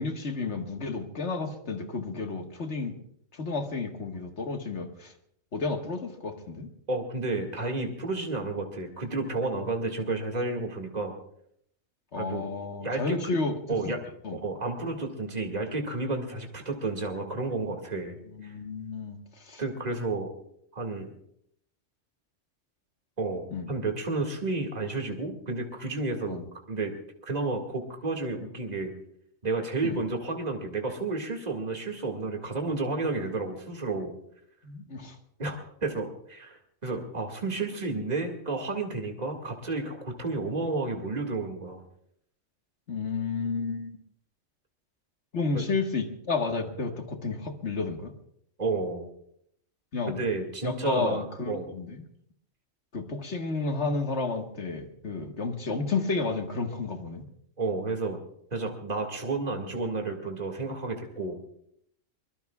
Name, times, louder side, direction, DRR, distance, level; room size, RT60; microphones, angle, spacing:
voice 1, 0.0-3.0 3.4-5.1 5.5-6.7 12.1-13.8 14.2-14.4 18.4-19.2 19.5-19.6 23.5-23.7 26.3-26.4 29.8-30.0 34.6-35.2 42.9-43.9 45.3-48.1 49.9-50.2 50.6-52.1 52.9-57.2, left 4 dB, 70° left, 4 dB, 1.9 m, -31 dB
voice 2, 6.9-11.2 12.2-12.5 12.8-13.2 13.7-14.0 14.3-18.6 19.6-20.3 20.7-21.1 23.2-26.4 26.7-26.9 27.3-28.9 29.4-34.1 35.4-41.8 45.5-45.7 48.6-49.1 50.2-51.7 57.6-58.2 58.5-61.4, right 3 dB, 35° right, 2 dB, 2.2 m, -31 dB
23.5 x 22.0 x 2.4 m, 0.70 s
omnidirectional pair, 1.2 m